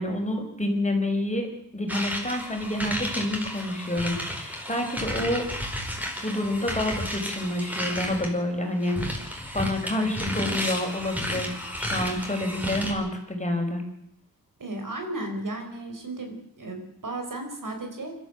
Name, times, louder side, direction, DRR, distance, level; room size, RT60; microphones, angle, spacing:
voice 1, 0.0-5.5 6.2-13.8, left 1 dB, 20° left, 3 dB, 5.0 m, -28 dB
sound 1, 1.9-8.3 8.8-12.9, equal, 5° right, 4.9 m, -32 dB
voice 2, 14.6-18.1, right 2 dB, 60° right, 5 dB, 4.7 m, -34 dB
25.5 x 13.0 x 8.0 m, 0.79 s
wide cardioid pair, 90°, 36 cm